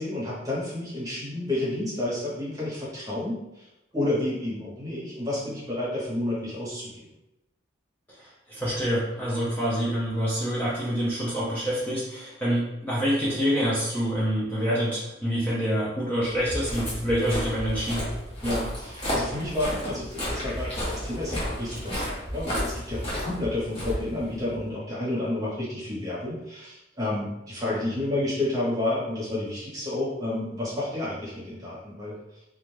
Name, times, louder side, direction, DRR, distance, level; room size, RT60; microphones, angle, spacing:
voice 1, 0.0-3.6 3.9-6.9 18.4-32.2, left 1 dB, 20° right, -7 dB, 0.9 m, -30 dB
voice 2, 8.2-18.1, equal, 10° left, -7 dB, 0.4 m, -26 dB
Walk footsteps, 16.3-24.6, equal, 30° left, 0.9 m, -32 dB
2.4 x 2.2 x 3.1 m, 0.90 s
head